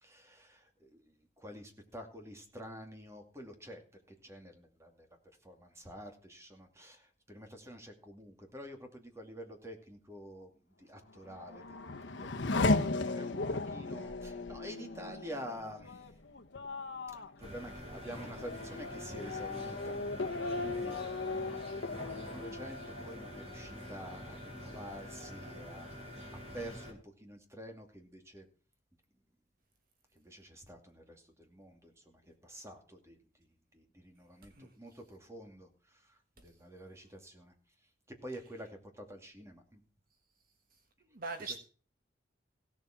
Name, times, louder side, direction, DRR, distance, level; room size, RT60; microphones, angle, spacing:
voice 1, 0.0-3.8 4.2-5.1 5.4-10.5 10.8-16.1 17.1-20.0 20.6-21.6 22.1-26.2 26.5-28.5 30.1-33.5 33.7-37.5 38.2-39.8 41.4-41.6, equal, 15° right, 4 dB, 2.4 m, -48 dB
Race car auto racing / Accelerating revving vroom, 11.1-24.3 24.7-25.4, left 3 dB, 75° left, 1.0 m, -37 dB
sound 1, 17.4-26.9, equal, 35° right, 4.0 m, -46 dB
voice 2, 41.1-41.6, right 3 dB, 50° right, 6 dB, 1.5 m, -41 dB
16.5 x 7.3 x 6.0 m, 0.40 s
head